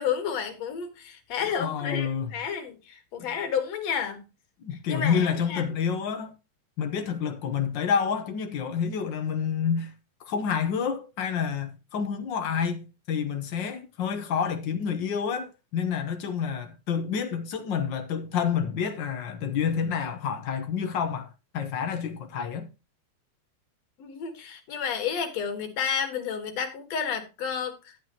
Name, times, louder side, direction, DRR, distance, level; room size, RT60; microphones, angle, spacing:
voice 1, 0.0-4.2 4.9-5.6 24.0-27.9, left 7 dB, 60° left, 2.7 m, -31 dB
voice 2, 1.6-2.3 4.6-6.3 6.8-9.9 10.2-22.7, left 7 dB, 80° left, 1.0 m, -28 dB
12.0 x 8.8 x 2.9 m
omnidirectional pair, 3.6 m